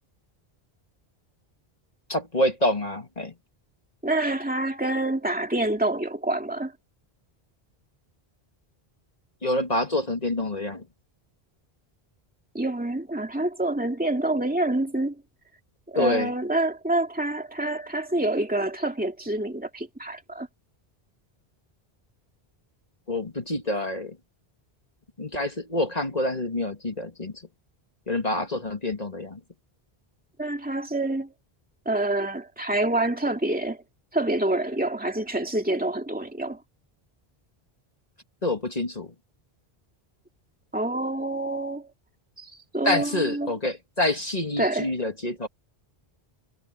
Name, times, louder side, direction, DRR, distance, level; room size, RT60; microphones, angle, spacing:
voice 1, 2.1-3.3 9.4-10.8 16.0-16.3 23.1-24.2 25.2-27.3 28.1-29.4 38.4-39.1 42.8-45.5, left 1 dB, 40° left, 2.3 m, -27 dB
voice 2, 4.0-6.7 12.5-15.2 15.9-20.5 30.4-31.3 31.9-33.8 34.1-36.6 40.7-41.9 42.4-43.5 44.6-44.9, right 2 dB, 10° right, 2.5 m, -27 dB
omnidirectional pair, 1.1 m